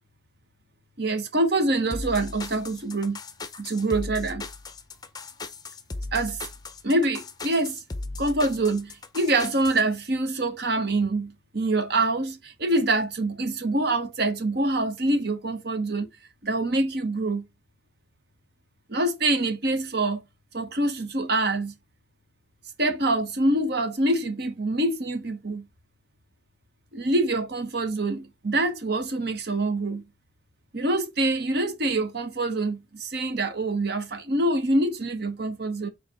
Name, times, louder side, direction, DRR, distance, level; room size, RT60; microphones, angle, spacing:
voice 1, 1.0-3.2 3.6-4.5 6.1-6.4 6.8-7.8 8.2-16.1 16.4-17.4 18.9-20.2 20.5-21.7 22.8-25.6 26.9-30.0 30.7-35.9, right 2 dB, 55° right, 1.2 m, -25 dB
sound 1, 1.9-9.8, left 3 dB, 20° left, 0.6 m, -37 dB
4.8 x 4.4 x 5.4 m
head